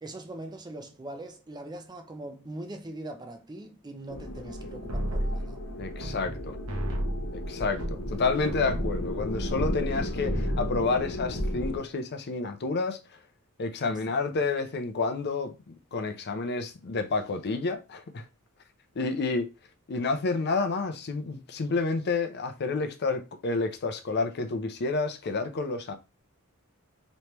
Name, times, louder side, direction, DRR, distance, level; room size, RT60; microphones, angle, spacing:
voice 1, 0.0-5.6 14.1-14.2, right 1 dB, 20° right, 0.5 m, -41 dB
sound 1, 4.1-11.8, left 1 dB, 70° left, 1.1 m, -36 dB
sound 2, 4.9-6.4 6.7-10.0 10.2-10.8 11.1-11.7, equal, 70° right, 0.9 m, -32 dB
voice 2, 5.8-6.6 7.3-13.0 13.6-18.2 19.0-19.5 19.9-25.9, left 3 dB, 50° left, 0.5 m, -29 dB
3.3 x 3.1 x 2.9 m
head